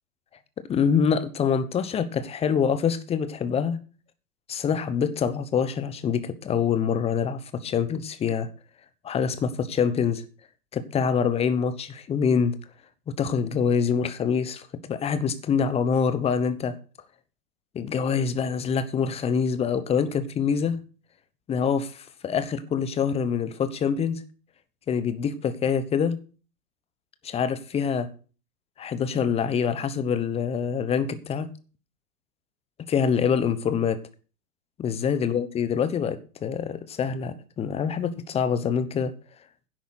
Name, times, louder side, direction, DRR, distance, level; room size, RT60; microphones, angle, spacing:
voice 1, 0.7-3.8 4.5-8.5 9.0-10.2 10.7-12.6 13.2-16.8 17.7-20.8 21.5-24.2 24.9-26.2 27.2-28.1 28.8-31.5 32.9-34.0 34.8-39.1, left 6 dB, 15° left, 0.9 m, -25 dB
10.5 x 8.2 x 6.4 m
figure-of-eight pair, 115°, 46 cm